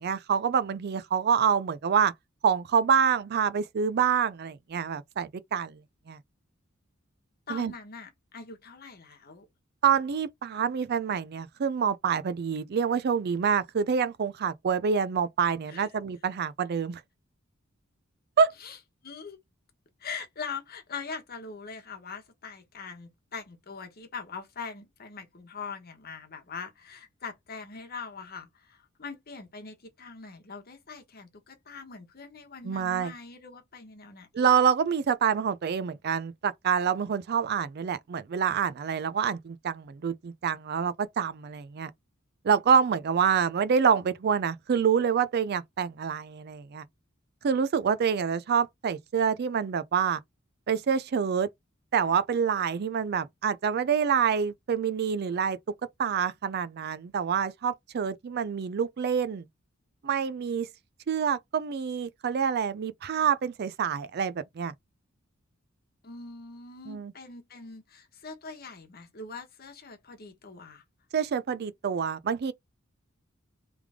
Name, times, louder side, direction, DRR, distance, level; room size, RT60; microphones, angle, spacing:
voice 1, 0.0-2.1 2.4-5.8 6.1-6.2 7.5-7.7 9.8-17.0 18.4-18.5 32.6-33.1 34.3-41.9 42.4-46.8 47.4-50.2 50.7-51.5 51.9-55.6 56.0-59.5 60.0-60.7 61.1-64.7 66.9-67.1 71.1-72.5, right 7 dB, 50° right, 0.4 m, -26 dB
voice 2, 7.5-9.5 15.7-15.9 18.6-18.8 19.0-19.4 20.0-34.5 66.0-70.8, left 5 dB, 50° left, 1.1 m, -42 dB
3.4 x 3.3 x 3.5 m
head